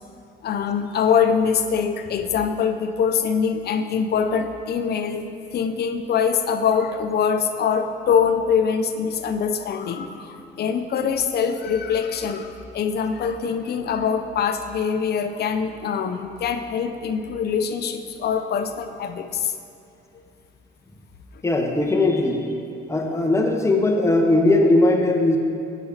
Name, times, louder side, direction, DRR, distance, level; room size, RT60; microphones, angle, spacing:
voice 1, 0.4-5.2 5.5-19.5, left 6 dB, 55° left, 8 dB, 0.5 m, -23 dB
voice 2, 21.4-22.5 22.9-25.4, left 2 dB, 15° left, 2 dB, 0.7 m, -19 dB
4.9 x 4.7 x 5.5 m, 2.6 s
cardioid pair, 90°, 20 cm